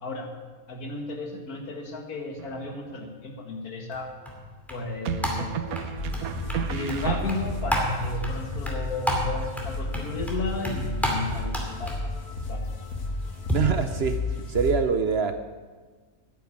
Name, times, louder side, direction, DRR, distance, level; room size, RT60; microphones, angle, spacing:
voice 1, 0.7-4.1 4.7-5.8 6.7-12.1 12.5-12.6, left 2 dB, 80° left, 3 dB, 2.2 m, -34 dB
sound 1, 2.4-3.0 5.0-7.7, right 7 dB, 80° right, 1.2 m, -33 dB
sound 2, 3.9-13.6, equal, ahead, 2.3 m, -33 dB
sound 3, 6.0-14.8, left 3 dB, 65° left, 1.9 m, -33 dB
voice 2, 13.5-15.3, right 6 dB, 55° right, 9 dB, 0.7 m, -25 dB
10.0 x 9.3 x 8.5 m, 1.4 s
omnidirectional pair, 1.5 m